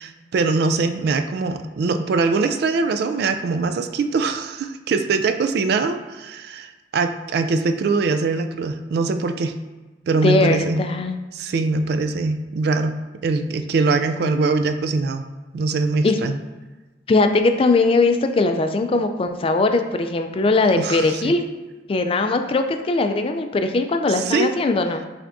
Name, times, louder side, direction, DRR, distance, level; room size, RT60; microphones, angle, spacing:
voice 1, 0.0-9.5 10.1-10.8 11.3-13.0 13.2-15.2 15.5-16.4 20.8-21.3 24.1-24.5, right 3 dB, 60° right, 8 dB, 0.3 m, -22 dB
voice 2, 10.2-11.2 16.0-16.2 17.1-21.4 21.9-25.0, left 3 dB, 30° left, 6 dB, 0.3 m, -20 dB
6.0 x 3.4 x 2.6 m, 1.2 s
head